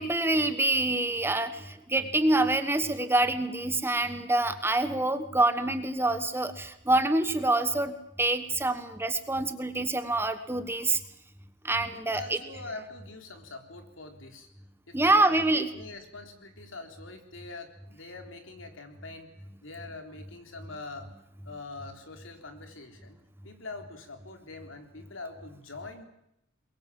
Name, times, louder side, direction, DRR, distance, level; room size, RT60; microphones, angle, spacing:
voice 1, 0.0-11.0 11.6-12.4 14.9-15.7, right 2 dB, 10° right, 10 dB, 1.3 m, -26 dB
voice 2, 11.9-14.5 14.9-19.3 19.6-21.1 21.5-23.2 23.4-26.1, left 3 dB, 70° left, 5 dB, 3.7 m, -44 dB
23.0 x 22.0 x 7.6 m, 0.78 s
head